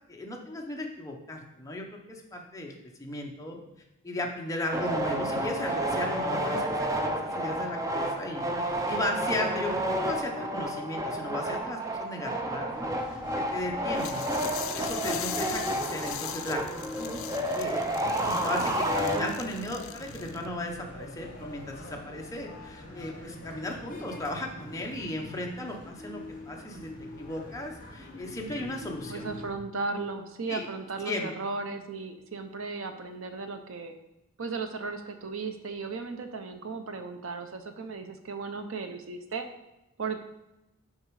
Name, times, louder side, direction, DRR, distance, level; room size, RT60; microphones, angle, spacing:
voice 1, 0.1-3.6 4.0-12.7 13.1-14.2 14.7-16.6 16.9-17.8 18.2-26.2 26.5-26.9 27.2-29.3 30.5-30.7 31.0-31.3, left 1 dB, 15° left, 0 dB, 0.9 m, -36 dB
sound 1, 4.7-19.7, right 1 dB, 15° right, 0.5 m, -31 dB
sound 2, 12.7-29.5, left 1 dB, 40° left, 2.0 m, -43 dB
sound 3, 14.0-20.5, left 11 dB, 75° left, 0.5 m, -40 dB
voice 2, 29.1-33.9 34.4-39.5 40.0-40.2, right 4 dB, 70° right, 7 dB, 0.7 m, -36 dB
6.5 x 5.0 x 4.8 m, 0.92 s
head